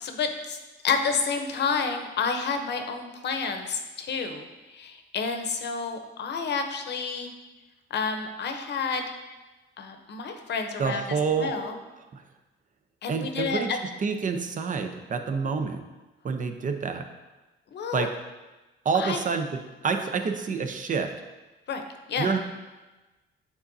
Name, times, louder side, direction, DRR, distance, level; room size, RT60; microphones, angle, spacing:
voice 1, 0.0-0.6 0.8-7.3 7.9-9.1 9.8-11.8 13.0-13.8 17.7-18.1 18.9-19.2 21.7-21.8 22.1-22.3, left 5 dB, 60° left, 6 dB, 0.7 m, -30 dB
voice 2, 10.8-11.5 12.1-12.2 13.1-13.7 14.0-15.8 16.2-17.0 17.9-18.1 18.8-19.5 19.8-21.1 22.2-22.4, right 5 dB, 40° right, 6 dB, 0.7 m, -27 dB
8.4 x 4.2 x 2.7 m, 1.2 s
cardioid pair, 90°, 20 cm